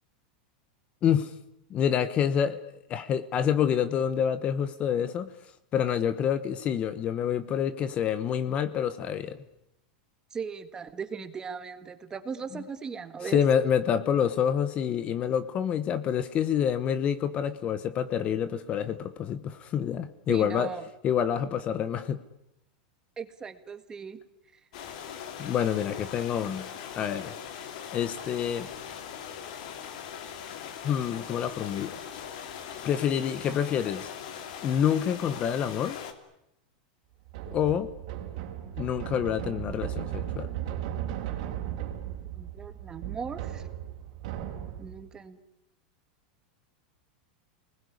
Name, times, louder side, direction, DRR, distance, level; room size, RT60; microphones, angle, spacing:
voice 1, 1.0-1.3 1.7-2.6 2.9-5.3 5.7-9.4 13.3-20.7 21.0-22.2 25.4-26.7 26.9-27.3 27.9-28.7 30.8-32.0 32.8-34.1 34.6-36.0 37.5-37.9 38.8-40.5, left 8 dB, 25° left, 14 dB, 1.0 m, -27 dB
voice 2, 10.3-13.4 20.3-20.8 23.2-24.2 24.5-24.6 42.4-43.7 44.8-45.4, right 6 dB, 15° right, 11 dB, 1.6 m, -38 dB
sound 1, 24.7-36.1, left 8 dB, 60° left, 3.1 m, -41 dB
sound 2, 37.3-45.0, right 11 dB, 55° right, 3.9 m, -36 dB
28.0 x 20.5 x 9.7 m, 0.85 s
supercardioid pair, 160°, 5 cm